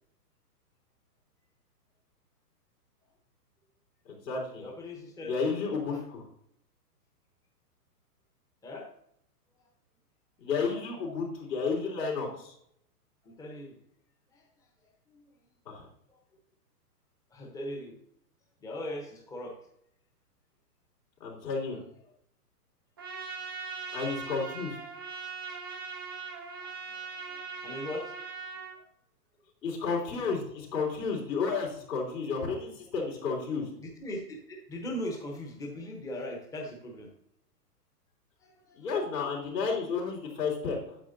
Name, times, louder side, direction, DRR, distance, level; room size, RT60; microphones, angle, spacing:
voice 1, 4.0-4.6 5.3-6.2 10.4-12.5 15.6-15.9 21.2-21.8 23.9-24.8 29.6-33.7 38.7-41.0, left 4 dB, 80° left, -2 dB, 3.5 m, -32 dB
voice 2, 4.6-5.4 5.9-6.0 8.6-8.9 9.6-9.7 13.2-13.8 14.3-15.3 16.1-16.2 17.3-18.0 18.6-19.6 26.6-28.4 33.8-37.1 38.4-38.9, left 1 dB, 5° left, 1 dB, 0.8 m, -40 dB
Trumpet, 23.0-28.8, right 5 dB, 15° right, 0.4 m, -40 dB
8.7 x 7.6 x 2.6 m, 0.74 s
hypercardioid pair, 150°, 48 cm